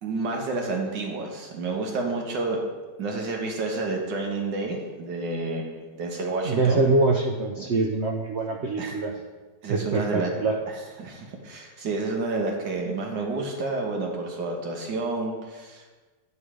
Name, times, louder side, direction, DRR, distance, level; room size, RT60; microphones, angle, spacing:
voice 1, 0.0-2.6 3.0-6.8 8.8-9.0 9.6-10.3 10.7-15.9, right 3 dB, 85° right, 1 dB, 1.9 m, -30 dB
voice 2, 6.4-9.2 9.7-10.5, right 3 dB, 65° right, 0 dB, 0.6 m, -24 dB
9.7 x 5.3 x 4.9 m, 1.3 s
omnidirectional pair, 1.9 m